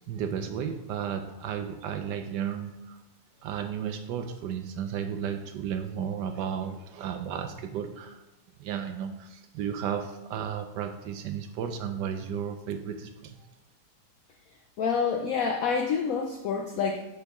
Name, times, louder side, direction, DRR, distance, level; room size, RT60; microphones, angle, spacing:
voice 1, 0.0-3.0 3.4-8.2 8.6-13.4, right 8 dB, 75° right, 7 dB, 1.1 m, -33 dB
voice 2, 14.8-17.1, left 6 dB, 85° left, 4 dB, 0.7 m, -27 dB
6.7 x 5.3 x 3.5 m, 0.99 s
omnidirectional pair, 2.1 m